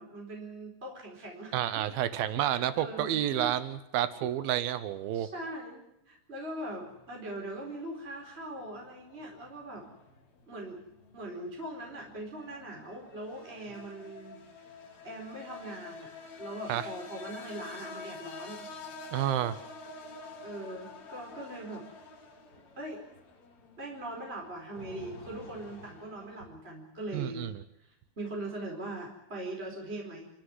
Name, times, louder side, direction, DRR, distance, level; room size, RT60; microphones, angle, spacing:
voice 1, 0.0-2.0 2.5-3.5 4.2-4.3 5.1-9.9 10.5-10.8 11.1-14.4 15.0-16.1 16.4-18.7 20.4-21.9 22.8-23.0 23.8-27.5 27.8-30.3, right 1 dB, 15° right, 0 dB, 4.1 m, -41 dB
voice 2, 1.5-5.3 16.7-16.9 19.1-19.6 27.1-27.5, right 12 dB, 90° right, 12 dB, 2.0 m, -30 dB
sound 1, 6.7-26.5, left 4 dB, 40° left, 3.9 m, -49 dB
30.0 x 14.0 x 9.7 m, 0.84 s
omnidirectional pair, 5.7 m